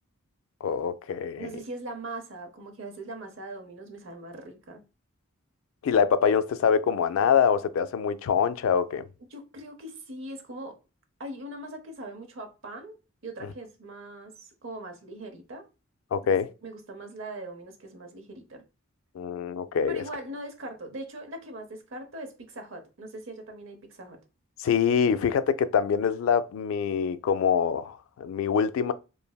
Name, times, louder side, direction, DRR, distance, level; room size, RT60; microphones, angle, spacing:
voice 1, 0.6-1.5 5.8-9.0 16.1-16.5 19.2-20.0 24.6-28.9, left 7 dB, 70° left, 0.3 m, -25 dB
voice 2, 1.4-4.8 9.3-10.8 11.2-15.7 16.2-16.3 16.6-18.6 19.9-24.2, right 1 dB, 65° right, 0.7 m, -41 dB
3.2 x 2.6 x 2.2 m
head